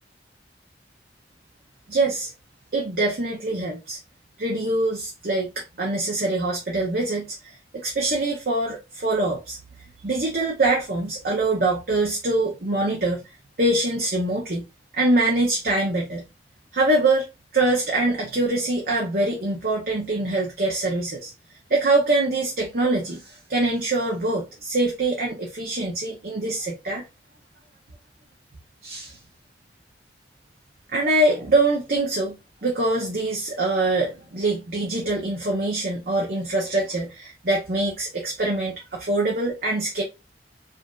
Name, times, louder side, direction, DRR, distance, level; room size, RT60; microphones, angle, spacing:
voice 1, 1.9-2.3 2.7-4.0 4.4-5.5 5.8-9.6 10.0-13.2 13.6-14.7 14.9-16.3 16.7-17.2 17.5-21.3 21.7-27.0 28.8-29.2 30.9-32.3 32.6-40.0, right 2 dB, 55° right, 0.7 m, -24 dB
5.1 x 2.5 x 2.4 m
head